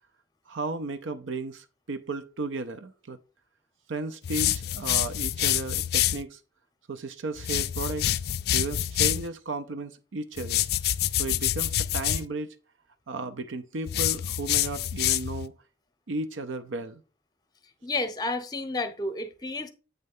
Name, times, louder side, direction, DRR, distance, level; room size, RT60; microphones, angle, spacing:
voice 1, 0.5-3.2 3.9-6.4 6.9-8.2 8.5-10.7 11.1-12.6 13.1-15.6 16.1-17.0, right 3 dB, 85° right, 0.6 m, -34 dB
sound 1, 4.2-6.2 7.4-9.3 10.4-12.3 13.9-15.5, left 12 dB, 55° left, 0.3 m, -27 dB
voice 2, 17.8-19.7, left 2 dB, 20° left, 0.7 m, -31 dB
8.1 x 3.2 x 5.4 m
head